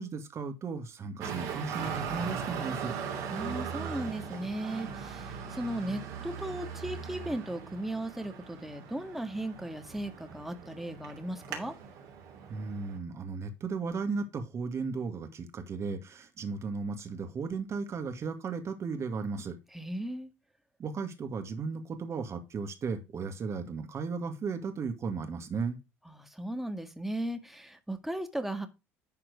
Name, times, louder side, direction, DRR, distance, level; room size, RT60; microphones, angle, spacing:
voice 1, 0.0-2.9 12.5-19.6 20.8-25.8, right 4 dB, 40° right, 6 dB, 2.1 m, -35 dB
Traffic noise roadway noise, 1.2-13.0, right 7 dB, 65° right, 3.0 m, -39 dB
voice 2, 3.3-11.7 19.7-20.3 26.1-28.7, right 1 dB, 5° right, 7 dB, 1.8 m, -36 dB
11.0 x 4.4 x 5.0 m, 0.26 s
hypercardioid pair, 60°, 7 cm